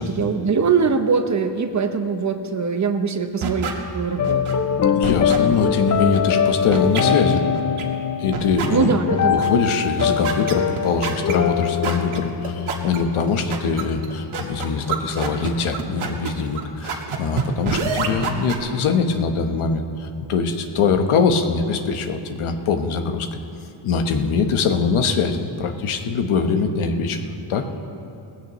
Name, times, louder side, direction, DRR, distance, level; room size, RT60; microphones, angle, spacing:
voice 1, 0.0-4.4 8.7-9.5, right 5 dB, 35° right, 7 dB, 0.8 m, -22 dB
sound 1, 3.4-3.7 4.2-4.5 5.0-5.4 5.9-6.2 6.7-7.0 7.5-7.8 8.3-8.7 9.1-9.5 10.0-18.6, right 6 dB, 75° right, 1.6 m, -27 dB
sound 2, 4.2-14.9, left 7 dB, 35° left, 0.6 m, -23 dB
voice 2, 4.9-7.4 8.2-8.9 9.3-23.4 23.8-27.2 27.5-27.7, left 5 dB, 80° left, 6 dB, 1.2 m, -22 dB
19.0 x 16.0 x 3.1 m, 2.7 s
cardioid pair, 120°, 50 cm